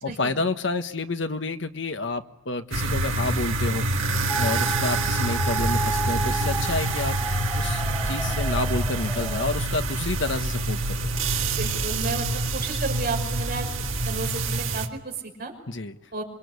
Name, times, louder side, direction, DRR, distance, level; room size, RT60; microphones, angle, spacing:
voice 1, 0.0-11.1 15.7-15.9, left 3 dB, 60° left, 8 dB, 1.3 m, -29 dB
sound 1, 2.7-14.9, right 2 dB, 85° right, 2.0 m, -27 dB
sound 2, 4.3-9.5, right 3 dB, ahead, 3.2 m, -32 dB
sound 3, 5.6-14.6, equal, 35° left, 7.9 m, -34 dB
voice 2, 11.6-12.3 12.5-13.7 14.1-15.5 16.1-16.2, right 3 dB, 50° right, 2 dB, 5.7 m, -32 dB
26.5 x 24.5 x 8.3 m, 0.92 s
head